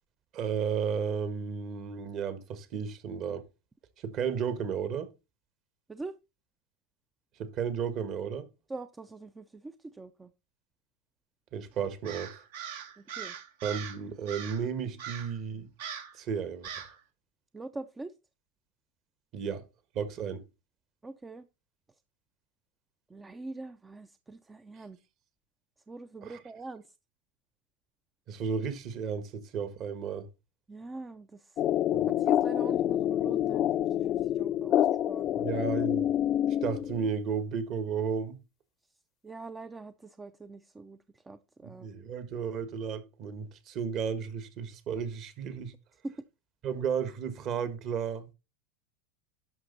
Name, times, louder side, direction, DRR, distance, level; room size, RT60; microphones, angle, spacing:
voice 1, 0.3-3.4 4.0-5.1 7.4-8.5 11.5-12.3 13.6-15.7 16.1-16.7 19.3-19.6 19.9-20.4 26.2-26.3 28.3-30.3 31.9-32.1 35.4-36.0 36.5-38.4 41.6-45.7 46.6-48.3, right 6 dB, 45° right, 1.6 m, -33 dB
voice 2, 8.7-10.3 13.0-13.4 17.5-18.1 21.0-21.5 23.1-25.0 25.9-26.9 30.7-31.7 32.1-35.9 39.2-42.0 46.0-46.1, right 3 dB, 15° right, 0.5 m, -44 dB
Crow, 12.0-14.0 14.3-14.7 15.0-15.4 15.8-16.2 16.6-17.0, right 8 dB, 75° right, 2.2 m, -40 dB
sound 1, 31.6-37.1, left 11 dB, 40° left, 0.5 m, -27 dB
11.5 x 6.0 x 4.0 m
supercardioid pair, 125°, 0 cm